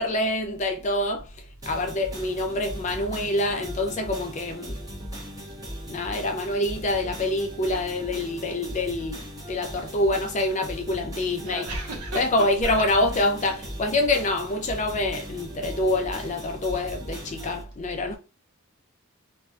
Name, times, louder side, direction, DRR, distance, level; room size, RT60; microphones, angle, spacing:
voice 1, 0.0-4.8 5.9-9.2 9.5-11.7 12.1-18.2, left 2 dB, 30° left, 0.4 m, -26 dB
sound 1, 1.6-17.6, equal, 15° right, 0.8 m, -38 dB
voice 2, 11.4-12.2 12.6-12.8, right 1 dB, 90° right, 1.1 m, -32 dB
3.1 x 2.6 x 2.4 m
head